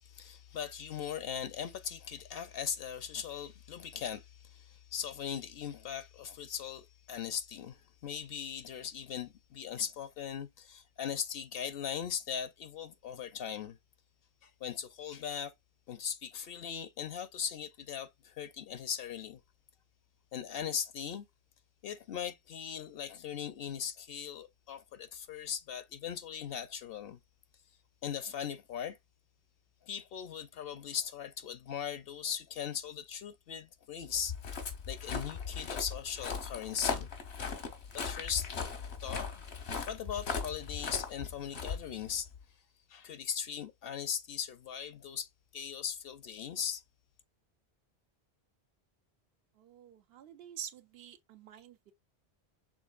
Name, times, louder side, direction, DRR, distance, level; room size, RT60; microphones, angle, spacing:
voice 1, 0.0-13.8 14.4-15.5 15.9-19.4 20.3-21.3 21.8-27.2 28.0-29.0 29.8-34.3 34.9-37.1 37.9-38.5 39.0-39.4 39.9-42.3 42.9-46.8, left 8 dB, 70° left, 0.7 m, -39 dB
Walk footsteps, 34.1-42.4, left 5 dB, 85° left, 1.3 m, -39 dB
voice 2, 49.6-51.9, right 9 dB, 75° right, 0.8 m, -47 dB
6.2 x 3.5 x 2.4 m
omnidirectional pair, 1.1 m